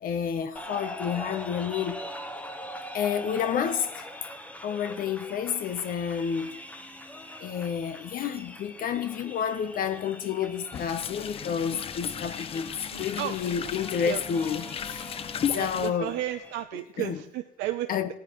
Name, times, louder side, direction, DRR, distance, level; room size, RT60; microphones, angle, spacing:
voice 1, 0.0-2.0 2.9-4.1 4.6-6.5 7.4-12.7 13.0-15.1 15.5-16.2 16.7-17.3 17.9-18.1, left 7 dB, 55° left, 0.8 m, -30 dB
sound 1, 0.6-16.6, equal, 10° left, 0.9 m, -42 dB
sound 2, 10.7-15.9, left 8 dB, 35° left, 0.4 m, -35 dB
voice 2, 12.9-13.4 14.0-14.2 15.5-17.9, right 13 dB, 85° right, 0.6 m, -33 dB
18.0 x 9.5 x 3.0 m
cardioid pair, 110°, 17 cm